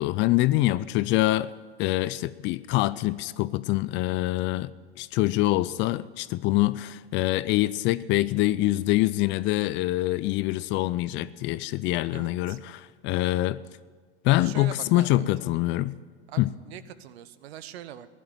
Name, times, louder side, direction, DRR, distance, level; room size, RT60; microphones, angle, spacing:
voice 1, 0.0-1.5 1.8-4.7 5.0-13.6 14.2-16.0 16.4-16.5, left 17 dB, 35° left, 18 dB, 0.4 m, -25 dB
voice 2, 12.1-12.6 14.4-15.5 16.3-18.1, right 11 dB, 65° right, 15 dB, 1.0 m, -42 dB
15.5 x 11.0 x 7.5 m, 1.5 s
hypercardioid pair, 90°, 34 cm